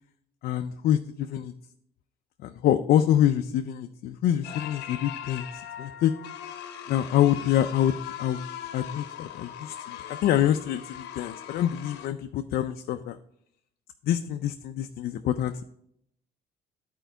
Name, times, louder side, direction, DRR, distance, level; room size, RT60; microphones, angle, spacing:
voice 1, 0.4-1.5 2.4-6.1 6.9-8.5 8.7-13.2 14.0-15.6, left 11 dB, 65° left, 8 dB, 0.4 m, -26 dB
sound 1, 4.4-12.1, left 10 dB, 85° left, 0.8 m, -40 dB
10.5 x 4.5 x 4.5 m, 0.73 s
cardioid pair, 110°, 17 cm